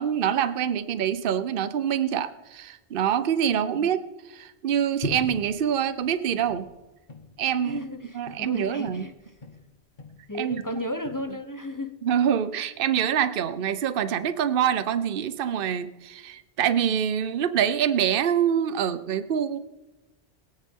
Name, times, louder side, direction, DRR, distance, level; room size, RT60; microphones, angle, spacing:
voice 1, 0.0-4.0 4.3-6.7 7.4-7.8 8.1-9.1 10.4-10.6 12.0-19.6, right 9 dB, 60° right, 12 dB, 0.9 m, -25 dB
voice 2, 3.6-3.9 7.6-9.1 10.3-12.0, left 1 dB, 20° left, 8 dB, 0.8 m, -34 dB
sound 1, 5.0-9.7 10.0-11.3, left 3 dB, 45° left, 1.6 m, -41 dB
21.5 x 9.8 x 3.7 m, 1.1 s
omnidirectional pair, 1.1 m